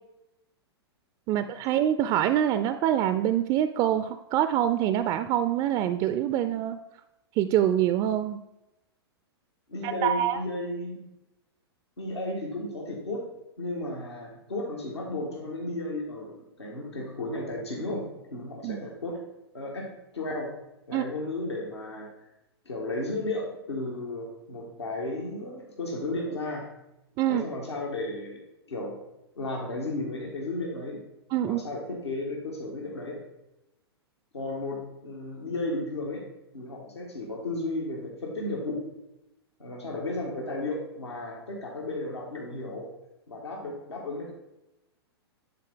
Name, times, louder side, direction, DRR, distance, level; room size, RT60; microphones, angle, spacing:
voice 1, 1.3-6.8 7.4-8.4 9.8-10.4 18.6-18.8 20.9-21.0 27.2-27.4 31.3-31.6, right 11 dB, 30° right, 11 dB, 0.3 m, -25 dB
voice 2, 9.7-11.0 12.0-13.2 13.6-18.0 18.3-19.2 19.5-19.9 20.1-20.5 20.9-22.1 22.6-26.7 27.3-28.4 28.7-29.0 29.4-31.0 31.4-33.2 34.3-36.2 36.5-38.8 39.6-42.9 43.3-44.3, left 2 dB, 90° left, -2 dB, 1.6 m, -34 dB
9.6 x 4.1 x 3.7 m, 0.91 s
hypercardioid pair, 115°, 14 cm